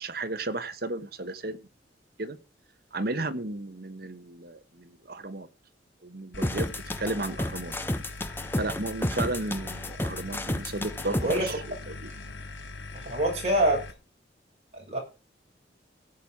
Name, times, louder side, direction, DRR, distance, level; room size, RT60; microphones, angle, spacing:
voice 1, 0.0-1.6 2.2-2.4 2.9-5.5 6.0-6.7 7.0-7.7 8.5-12.1, right 2 dB, 55° right, 1.3 m, -34 dB
sound 1, 6.3-13.9, left 3 dB, 85° left, 2.1 m, -41 dB
sound 2, 6.4-11.5, left 1 dB, 10° left, 0.9 m, -31 dB
voice 2, 12.9-13.8 14.7-15.0, right 1 dB, 35° right, 6.5 m, -25 dB
16.5 x 7.3 x 6.0 m
head